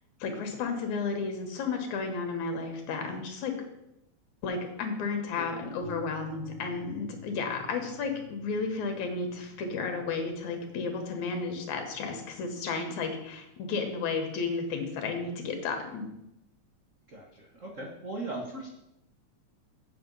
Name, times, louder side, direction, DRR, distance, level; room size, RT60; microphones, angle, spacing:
voice 1, 0.2-3.5 4.4-16.0, left 4 dB, 80° left, 4 dB, 2.7 m, -33 dB
voice 2, 5.3-5.7 17.1-18.7, right 2 dB, 75° right, -1 dB, 0.7 m, -39 dB
sound 1, 5.8-13.7, equal, 50° right, 4.0 m, -49 dB
8.6 x 6.5 x 5.4 m, 0.87 s
omnidirectional pair, 3.4 m